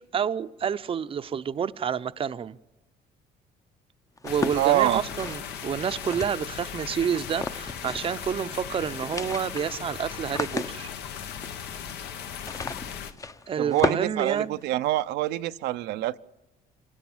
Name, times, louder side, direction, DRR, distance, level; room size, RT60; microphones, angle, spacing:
voice 1, 0.0-2.6 4.2-10.9 13.5-14.6, right 8 dB, 35° right, 0.6 m, -29 dB
sound 1, 4.2-6.7 7.3-8.2 8.5-8.6 8.9-15.0, left 3 dB, 20° left, 0.7 m, -35 dB
sound 2, 4.3-13.1, left 8 dB, 80° left, 1.4 m, -38 dB
voice 2, 4.5-5.0 13.6-16.2, right 14 dB, 80° right, 0.6 m, -25 dB
25.0 x 16.5 x 7.3 m
cardioid pair, 110°, 17 cm